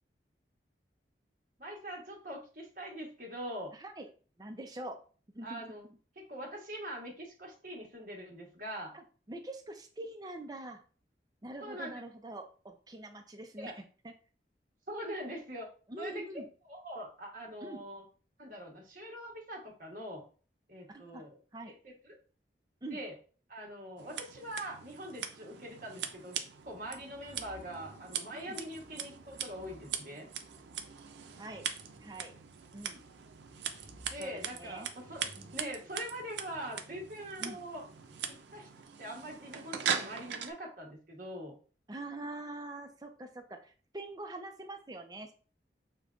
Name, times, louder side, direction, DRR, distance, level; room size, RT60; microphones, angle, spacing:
voice 1, 1.6-3.7 5.4-5.9 6.2-8.9 11.6-12.0 13.6-13.7 14.9-15.7 16.0-16.4 16.7-18.0 18.4-20.2 20.7-21.4 21.7-22.2 22.9-23.1 23.5-26.3 26.6-30.3 34.1-37.8 38.3-38.7 39.0-41.5, right 1 dB, 50° right, -1 dB, 1.2 m, -43 dB
voice 2, 4.4-5.0 5.3-5.6 8.9-10.8 11.4-13.7 14.0-14.1 15.9-16.5 17.6-17.8 20.9-21.2 21.5-21.8 22.8-23.0 28.3-28.6 31.4-31.7 32.0-32.3 32.7-33.0 34.1-34.9 35.4-35.5 37.4-37.6 41.9-45.3, right 1 dB, 20° right, 5 dB, 0.5 m, -44 dB
Scissors, 24.0-40.5, right 7 dB, 85° right, 0.5 m, -41 dB
sound 1, 26.5-38.7, equal, 90° left, 1.5 m, -60 dB
6.5 x 2.2 x 2.4 m, 0.39 s
head